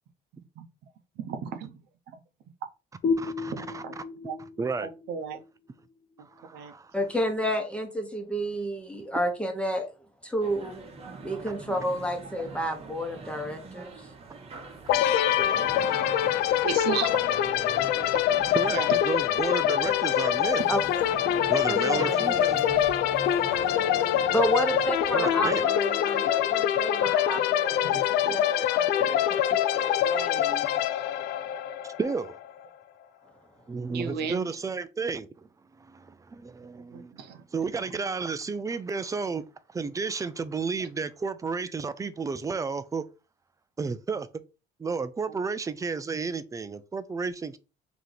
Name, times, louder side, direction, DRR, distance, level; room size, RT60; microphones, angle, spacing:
voice 1, 1.3-1.8 2.1-2.2 3.8-3.9 4.2-4.4 4.8-5.4 6.5-6.7 16.6-17.1 18.7-18.9 27.9-28.0 29.0-29.2 33.9-34.5 36.9-37.4, right 6 dB, 75° right, 0.7 m, -33 dB
sound 1, 3.0-6.4, left 4 dB, 45° left, 0.8 m, -33 dB
voice 2, 3.2-4.0 4.4-4.9 6.4-7.0 15.3-16.4 18.5-20.7 21.5-22.6 25.1-25.6 31.8-32.4 33.7-35.5 35.8-37.1 37.5-39.4 39.7-43.0 43.8-44.3 44.8-47.6, right 4 dB, 20° right, 0.4 m, -32 dB
voice 3, 6.9-9.9 10.2-10.8 11.2-13.9 20.7-20.8 21.7-22.8 24.3-27.9 28.2-29.2 29.5-30.7, equal, 5° left, 0.9 m, -31 dB
sound 2, 10.4-25.2, right 3 dB, 35° right, 0.9 m, -44 dB
sound 3, 14.9-32.5, left 11 dB, 85° left, 0.4 m, -25 dB
3.2 x 2.9 x 3.9 m
cardioid pair, 110°, 17 cm